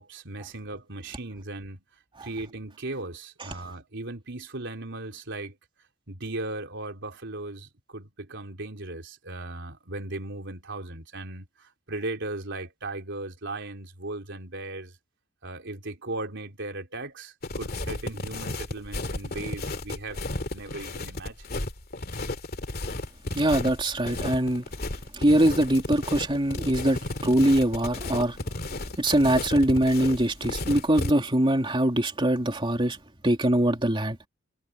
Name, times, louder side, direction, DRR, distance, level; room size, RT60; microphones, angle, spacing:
voice 1, 0.0-1.8 2.2-5.5 6.1-14.9 15.4-20.2 20.5-21.4, right 2 dB, 60° right, 3.8 m, -37 dB
sound 1, 17.4-31.1, left 2 dB, 50° left, 2.4 m, -33 dB
voice 2, 23.3-24.6 25.1-28.4 29.0-33.0 33.2-34.2, right 1 dB, 25° right, 3.0 m, -23 dB
head